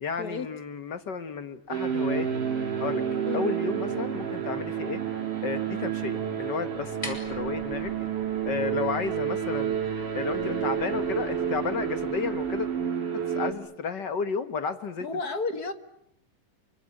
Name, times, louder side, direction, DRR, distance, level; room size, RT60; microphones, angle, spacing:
voice 1, 0.0-2.3 2.8-3.0 3.3-5.0 5.4-7.9 8.5-9.8 10.1-12.7 13.1-15.1, left 5 dB, 55° left, 11 dB, 1.2 m, -32 dB
sound 1, 1.7-13.5, right 8 dB, 70° right, 5.8 m, -30 dB
sound 2, 6.7-12.7, left 1 dB, 10° left, 5.4 m, -46 dB
voice 2, 15.0-15.7, left 3 dB, 35° left, 9 dB, 2.0 m, -31 dB
28.5 x 25.0 x 8.4 m, 0.73 s
omnidirectional pair, 3.7 m